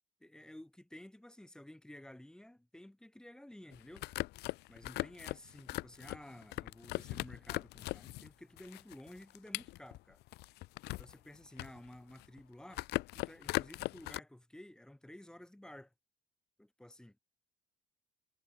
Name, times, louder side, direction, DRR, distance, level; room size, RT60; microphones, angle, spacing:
voice 1, 0.2-4.1 4.7-10.2 11.0-12.9 13.1-15.9 16.6-17.2, left 1 dB, 5° left, 0.9 m, -53 dB
sound 1, 3.7-8.3 8.6-11.1 11.5-12.4 12.7-14.2, left 19 dB, 80° left, 0.5 m, -39 dB
cardioid pair, 110°, 17 cm